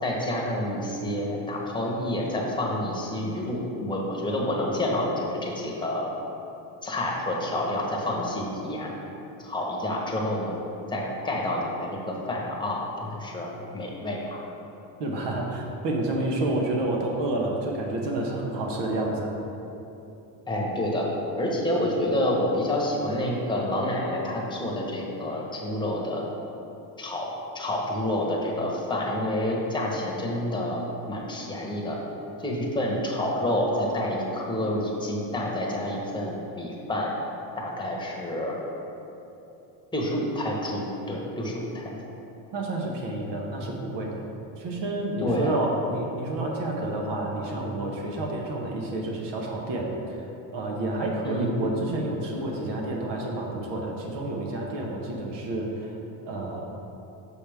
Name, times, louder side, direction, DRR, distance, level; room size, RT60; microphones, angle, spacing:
voice 1, 0.0-6.1 6.8-8.9 9.4-10.5 10.9-14.5 20.5-21.1 21.4-26.2 27.0-27.3 27.5-32.0 32.4-37.1 37.6-38.6 39.9-41.8 45.2-45.5 51.2-51.6, left 1 dB, 10° left, -3 dB, 1.2 m, -28 dB
voice 2, 15.0-19.3 42.5-44.2 44.6-50.2 50.5-55.9 56.2-56.7, right 2 dB, 60° right, -1 dB, 1.2 m, -29 dB
6.6 x 5.2 x 3.5 m, 3.0 s
supercardioid pair, 95°, 47 cm